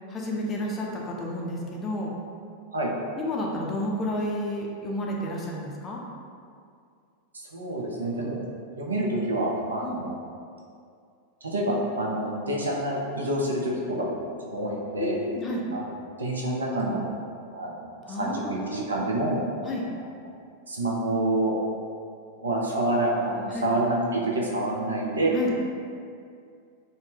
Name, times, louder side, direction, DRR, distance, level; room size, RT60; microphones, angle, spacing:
voice 1, 0.1-2.2 3.2-6.0 9.8-10.0 15.0-15.7 18.1-19.1 19.6-19.9 23.5-23.7 25.3-25.5, left 1 dB, 20° left, -2 dB, 0.4 m, -31 dB
voice 2, 7.5-8.4 8.8-10.2 11.4-14.1 14.4-15.2 15.7-15.8 16.2-17.0 17.5-17.9 18.2-19.4 20.7-21.5 22.4-25.3, right 1 dB, 75° right, -3 dB, 0.4 m, -27 dB
2.6 x 2.0 x 3.3 m, 2.3 s
figure-of-eight pair, 90°, 0 cm